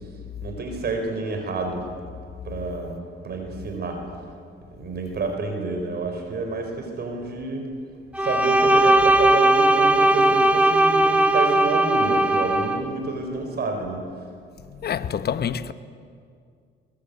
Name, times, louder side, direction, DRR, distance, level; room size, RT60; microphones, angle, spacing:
voice 1, 0.4-1.9 2.4-3.0 3.2-4.0 4.7-7.6 8.2-14.0, right 3 dB, 55° right, 4.6 m, -29 dB
Bowed string instrument, 8.1-12.8, right 1 dB, 5° right, 1.8 m, -18 dB
voice 2, 14.7-15.7, left 8 dB, 55° left, 1.1 m, -27 dB
21.5 x 21.0 x 8.4 m
cardioid pair, 90°, 20 cm